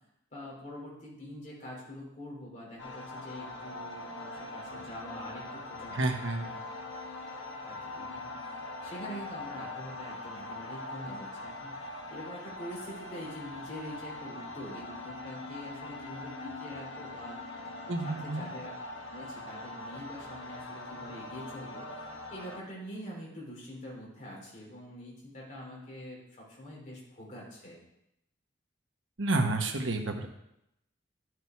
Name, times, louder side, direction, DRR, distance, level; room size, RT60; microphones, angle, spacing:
voice 1, 0.3-6.6 7.2-7.4 7.6-8.6 8.8-11.7 12.1-17.4 18.0-18.7 19.1-21.9 22.3-27.8, equal, 40° left, -4 dB, 3.9 m, -45 dB
sound 1, 2.8-22.6, left 2 dB, 75° left, 1.3 m, -42 dB
voice 2, 5.9-6.6 17.9-18.5 29.2-30.3, right 2 dB, 85° right, 4 dB, 1.3 m, -30 dB
11.0 x 6.6 x 4.7 m, 0.82 s
head